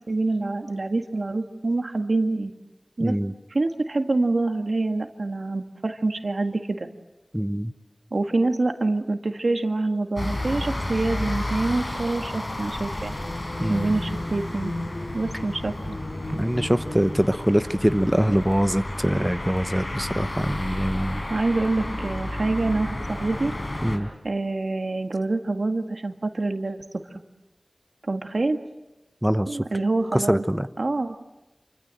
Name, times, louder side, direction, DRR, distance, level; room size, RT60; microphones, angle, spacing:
voice 1, 0.1-2.5 3.0-3.1 3.5-6.9 8.1-13.1 13.7-14.7 15.1-16.0 21.1-23.5 24.2-27.0 28.0-28.6 29.5-30.4 30.8-31.2, right 2 dB, 80° right, 5 dB, 1.9 m, -26 dB
voice 2, 3.0-3.3 7.3-7.7 13.6-13.9 16.3-21.2 23.8-24.1 29.2-29.6 30.1-30.7, equal, 10° right, 10 dB, 0.9 m, -23 dB
sound 1, 10.2-24.0, left 1 dB, 55° left, 4.9 m, -32 dB
sound 2, 13.0-19.0, left 1 dB, 70° left, 4.6 m, -36 dB
28.0 x 25.0 x 7.7 m, 1.0 s
wide cardioid pair, 45°, 0 cm